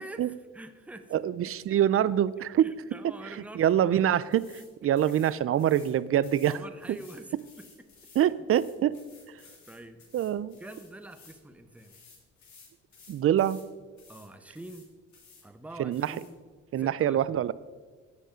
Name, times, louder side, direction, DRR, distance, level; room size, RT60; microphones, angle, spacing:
voice 1, 0.0-1.2 1.7-1.8 2.6-4.1 6.5-7.7 9.7-10.1 10.6-11.9 14.1-14.9 15.4-16.4 16.8-17.4, right 1 dB, 5° right, 9 dB, 0.8 m, -45 dB
voice 2, 1.1-2.7 3.0-6.6 6.9-7.0 8.1-9.0 9.3-9.4 10.1-10.6 13.1-13.6 15.8-16.2 16.7-17.5, right 11 dB, 50° right, 18 dB, 0.4 m, -25 dB
sound 1, 4.3-4.7 5.0-5.9 6.2-11.4 11.7-13.7 14.0-14.3 14.5-15.4 15.9-16.3, left 4 dB, 70° left, 2.9 m, -56 dB
15.5 x 5.3 x 5.0 m, 1.5 s
cardioid pair, 90°, 30 cm